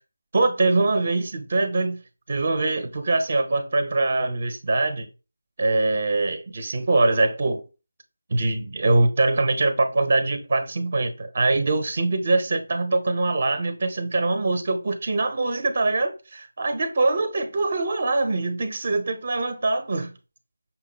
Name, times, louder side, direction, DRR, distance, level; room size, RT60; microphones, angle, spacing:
voice 1, 0.3-2.0 2.3-5.1 5.6-7.6 8.3-20.1, right 2 dB, 40° right, 0.5 m, -23 dB
5.6 x 2.1 x 3.9 m
figure-of-eight pair, 165°, 0 cm